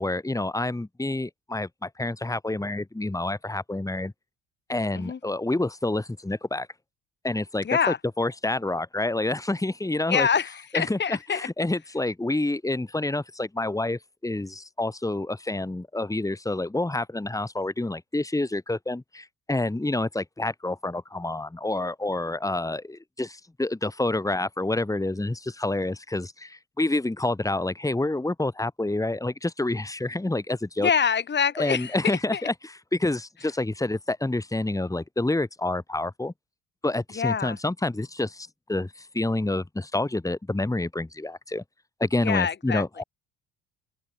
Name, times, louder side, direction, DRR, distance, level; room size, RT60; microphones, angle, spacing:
voice 1, 0.0-4.1 4.7-6.7 7.2-7.7 8.2-10.3 10.7-11.0 11.3-30.9 31.6-32.5 32.9-36.3 36.8-41.6 42.0-43.0, left 2 dB, 10° left, 3.4 m, -28 dB
voice 2, 7.6-8.0 10.1-11.5 30.8-32.4 37.1-37.6 42.2-43.0, left 7 dB, 35° left, 1.7 m, -26 dB
open air
supercardioid pair, 75°, 30 cm